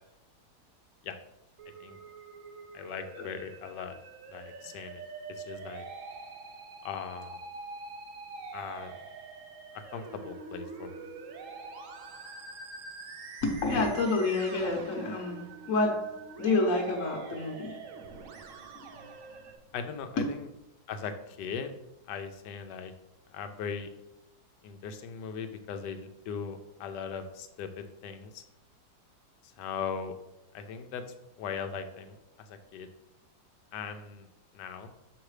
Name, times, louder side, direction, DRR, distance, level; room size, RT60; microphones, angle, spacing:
Musical instrument, 1.6-19.6, right 4 dB, 65° right, 0.8 m, -45 dB
voice 1, 2.7-4.0 4.3-5.0 5.3-5.8 6.8-7.4 8.5-9.0 9.7-11.1 19.7-20.5 20.9-21.7 22.1-22.9 23.3-23.9 24.6-28.4 29.4-30.1 30.5-31.0 31.4-32.9 33.7-34.3 34.5-34.9, left 6 dB, 70° left, 8 dB, 1.2 m, -39 dB
voice 2, 13.4-16.0 16.4-17.8 18.1-18.2 18.7-19.1, left 3 dB, 50° left, -1 dB, 1.1 m, -29 dB
7.2 x 3.3 x 4.8 m, 0.93 s
omnidirectional pair, 2.1 m